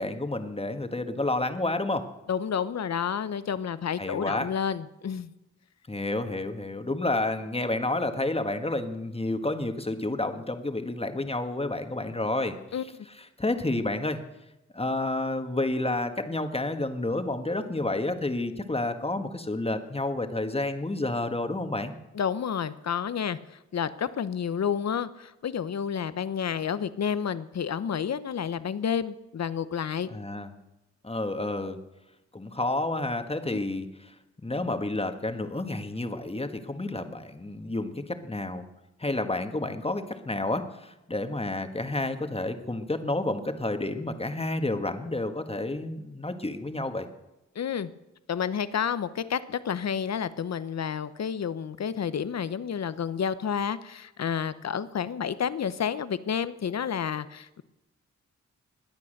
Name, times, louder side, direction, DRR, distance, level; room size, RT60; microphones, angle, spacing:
voice 1, 0.0-2.1 4.0-4.5 5.9-12.5 13.4-14.2 14.7-21.9 30.1-30.5 31.0-31.8 32.3-34.1 34.4-38.6 39.0-47.1, left 2 dB, 20° left, 7 dB, 1.6 m, -30 dB
voice 2, 2.3-5.3 12.7-13.1 22.1-30.1 33.5-33.6 47.5-47.9 48.3-57.6, left 7 dB, 60° left, 15 dB, 0.8 m, -30 dB
21.5 x 8.4 x 6.6 m, 0.95 s
cardioid pair, 60°, 30 cm